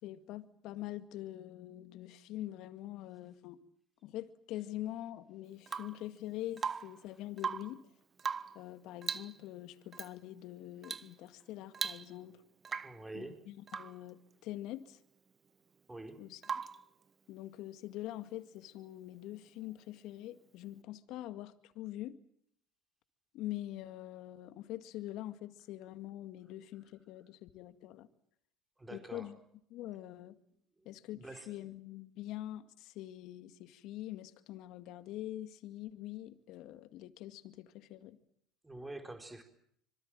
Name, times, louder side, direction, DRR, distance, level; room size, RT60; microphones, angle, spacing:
voice 1, 0.0-3.6 4.0-7.8 8.6-12.4 13.1-15.0 16.2-16.6 17.3-22.2 23.3-28.1 28.9-29.4 29.7-30.4 30.9-38.2, left 14 dB, 65° left, 2.0 m, -44 dB
Rain / Water tap faucet / Drip, 5.7-6.0 6.6-7.0 7.3-7.8 8.2-8.6 9.0-9.4 9.9-10.1 10.8-11.1 11.4-11.5 11.7-12.3 12.6-13.0 13.7-14.0 16.4-16.9 18.8-18.9, right 6 dB, 30° right, 1.3 m, -39 dB
voice 2, 12.8-13.4 15.9-16.2 28.8-29.3 30.8-31.5 38.6-39.4, right 2 dB, 15° right, 4.5 m, -47 dB
25.5 x 24.5 x 7.6 m
hypercardioid pair, 80°, 0 cm